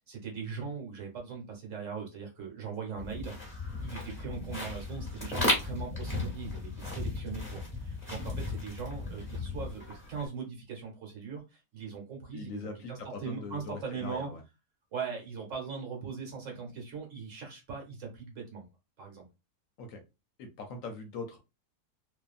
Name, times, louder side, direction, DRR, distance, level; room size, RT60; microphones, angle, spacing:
voice 1, 0.1-3.3 3.8-14.3 14.9-18.6 19.0-19.3, right 5 dB, 60° right, 1.2 m, -40 dB
sound 1, 3.0-10.3, left 2 dB, 10° left, 1.4 m, -35 dB
voice 2, 12.3-14.4 19.8-20.0 20.4-21.4, left 4 dB, 70° left, 0.9 m, -41 dB
2.6 x 2.4 x 2.3 m
omnidirectional pair, 1.6 m